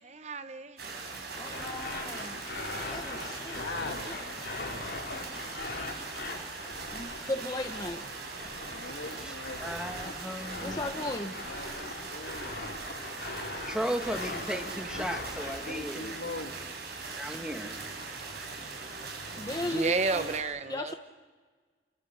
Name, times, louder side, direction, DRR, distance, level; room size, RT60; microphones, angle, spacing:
voice 1, 0.0-0.8 14.9-15.2 19.6-20.9, right 4 dB, 40° right, 11 dB, 0.9 m, -32 dB
sound 1, 0.8-20.4, right 4 dB, 60° right, 7.1 m, -41 dB
sound 2, 1.4-15.8, left 3 dB, 65° left, 3.3 m, -41 dB
voice 2, 1.4-2.4 2.9-3.7 4.1-4.2 6.9-8.0 10.6-11.3 19.4-20.3 20.7-20.9, left 1 dB, 20° left, 5 dB, 0.9 m, -36 dB
voice 3, 3.3-4.2 8.7-9.6 11.4-12.5 15.7-16.5, left 2 dB, 85° left, 4 dB, 2.4 m, -41 dB
voice 4, 9.6-10.8 13.7-16.3 17.1-17.7, equal, 5° right, 4 dB, 2.0 m, -35 dB
29.0 x 22.5 x 7.9 m, 1.5 s
head